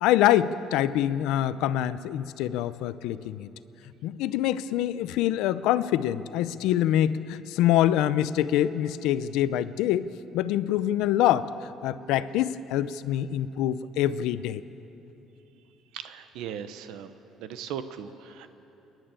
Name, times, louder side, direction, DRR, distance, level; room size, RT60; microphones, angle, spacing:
voice 1, 0.0-3.5 4.0-10.1 10.3-11.5 11.8-14.6, left 12 dB, 85° left, 14 dB, 0.6 m, -25 dB
voice 2, 15.9-17.1 17.4-18.5, right 8 dB, 75° right, 10 dB, 0.9 m, -38 dB
28.5 x 11.0 x 8.9 m, 3.0 s
cardioid pair, 170°, 0 cm